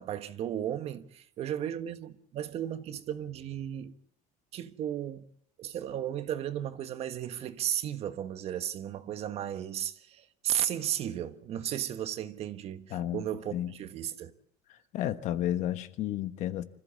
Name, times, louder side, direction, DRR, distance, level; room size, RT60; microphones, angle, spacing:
voice 1, 0.0-3.9 4.5-5.2 5.6-14.3, right 10 dB, 45° right, 1.3 m, -35 dB
voice 2, 12.9-13.7 14.7-16.6, left 12 dB, 55° left, 1.3 m, -32 dB
25.5 x 15.0 x 8.5 m
cardioid pair, 160°, 15 cm